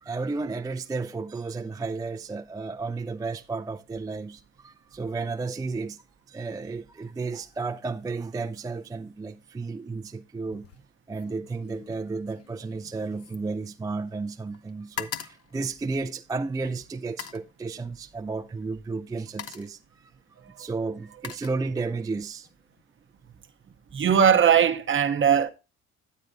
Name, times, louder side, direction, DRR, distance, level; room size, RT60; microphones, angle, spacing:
voice 1, 0.0-6.0 6.3-10.7 11.1-20.1 20.6-22.5, right 4 dB, 15° right, 0.3 m, -33 dB
sound 1, 10.5-10.8 11.1-14.3 14.5-16.4 17.0-17.5 18.5-18.7 19.1-19.8 20.7-22.1 22.4-22.8, left 9 dB, 50° left, 0.6 m, -42 dB
voice 2, 23.9-25.5, right 8 dB, 40° right, 0.8 m, -20 dB
9.1 x 8.6 x 2.6 m
cardioid pair, 90°, 30 cm